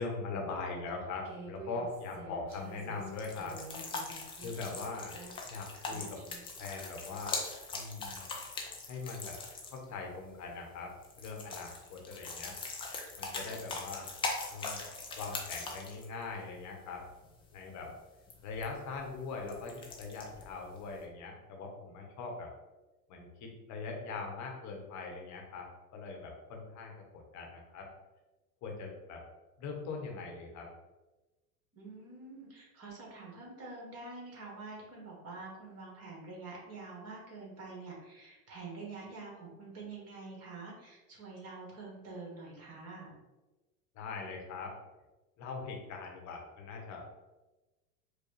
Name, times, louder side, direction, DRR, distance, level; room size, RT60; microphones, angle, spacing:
voice 1, 0.0-3.6 4.4-5.1 5.5-6.2 6.6-7.4 7.7-8.2 8.9-9.4 9.6-12.5 13.2-14.1 14.5-14.8 15.1-17.0 17.5-17.9 18.4-22.5 23.1-25.7 25.9-27.9 28.6-29.2 29.6-30.7 43.9-44.7 45.4-47.1, left 4 dB, 40° left, 1 dB, 1.0 m, -41 dB
Human voice, 1.2-6.5, right 2 dB, 50° right, 0.9 m, -49 dB
sound 1, 2.5-21.0, left 3 dB, 15° left, 0.3 m, -42 dB
voice 2, 31.7-43.1, right 3 dB, 35° right, -2 dB, 1.5 m, -46 dB
4.8 x 2.2 x 3.1 m, 1.1 s
hypercardioid pair, 100°, 46 cm